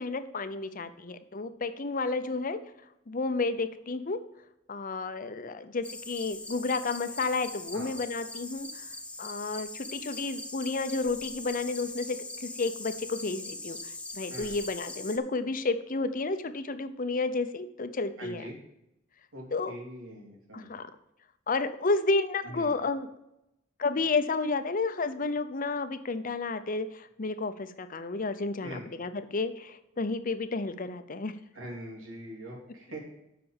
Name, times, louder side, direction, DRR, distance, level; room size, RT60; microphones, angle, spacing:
voice 1, 0.0-2.6 3.1-4.2 4.7-18.4 19.5-19.8 20.5-20.9 21.5-23.1 23.8-31.3, left 3 dB, 45° left, 10 dB, 0.7 m, -31 dB
sound 1, 5.8-15.2, left 2 dB, 5° left, 0.8 m, -41 dB
voice 2, 18.2-18.5 19.3-20.7 22.4-22.7 28.6-28.8 31.5-33.0, right 1 dB, 90° right, -3 dB, 3.2 m, -42 dB
7.9 x 6.1 x 7.3 m, 0.86 s
head